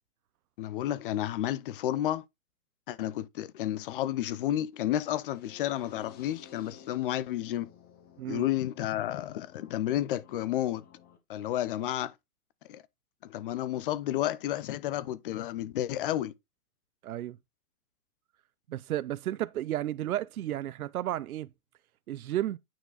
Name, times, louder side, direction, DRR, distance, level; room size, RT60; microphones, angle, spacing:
voice 1, 0.6-2.2 2.9-7.7 8.3-10.8 11.3-12.1 12.7-12.8 13.2-16.3, left 12 dB, 40° left, 0.7 m, -31 dB
sound 1, 5.2-11.2, left 7 dB, 20° left, 1.6 m, -54 dB
voice 2, 17.0-17.4 18.7-21.5 22.1-22.6, right 13 dB, 75° right, 0.7 m, -33 dB
9.1 x 4.6 x 4.0 m
hypercardioid pair, 140°, 43 cm